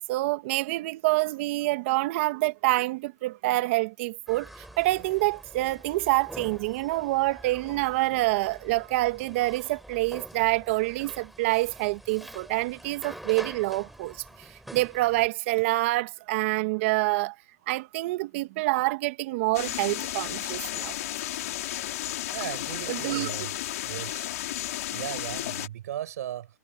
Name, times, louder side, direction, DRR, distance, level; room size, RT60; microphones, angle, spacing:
voice 1, 0.1-14.2 14.7-17.3 17.7-21.0 22.9-23.3, right 20 dB, 45° right, 2.1 m, -27 dB
sound 1, 4.3-15.3, equal, ahead, 3.4 m, -46 dB
sound 2, 19.5-25.7, left 14 dB, 55° left, 3.2 m, -33 dB
voice 2, 22.3-23.5 23.9-24.2 24.9-26.5, right 12 dB, 65° right, 5.9 m, -36 dB
hypercardioid pair, 145°, 9 cm